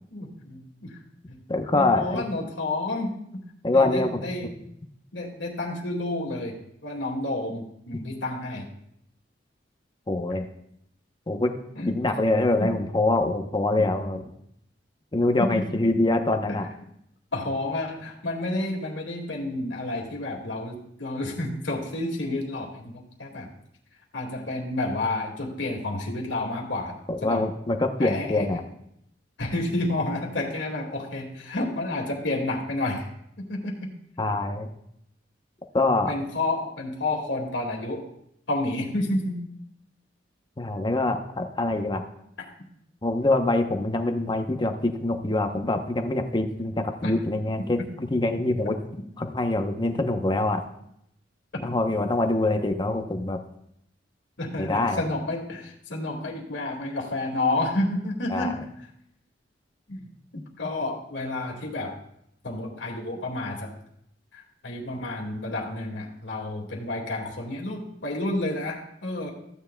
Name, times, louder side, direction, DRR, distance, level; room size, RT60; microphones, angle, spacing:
voice 1, 0.1-0.9 1.3-1.4 1.7-3.4 3.7-4.5 5.1-8.7 11.8-11.9 12.6-12.7 15.4-15.5 16.5-16.6 17.3-23.5 24.1-27.4 28.0-28.5 29.4-33.1 33.4-33.9 36.1-38.0 38.5-39.4 44.1-44.2 47.0-47.1 54.4-58.6 59.9-60.1 60.6-61.9 62.4-63.7 64.3-69.3, left 2 dB, 90° left, 0 dB, 2.0 m, -30 dB
voice 2, 1.5-2.2 3.6-4.5 10.1-10.4 11.3-11.5 11.8-14.2 15.1-16.7 27.1-28.6 34.2-34.7 35.7-36.1 40.6-42.0 43.0-48.8 49.2-50.6 51.6-53.4 54.6-55.0 58.3-58.5, left 2 dB, 25° left, 6 dB, 0.8 m, -24 dB
15.0 x 9.3 x 2.2 m, 0.76 s
head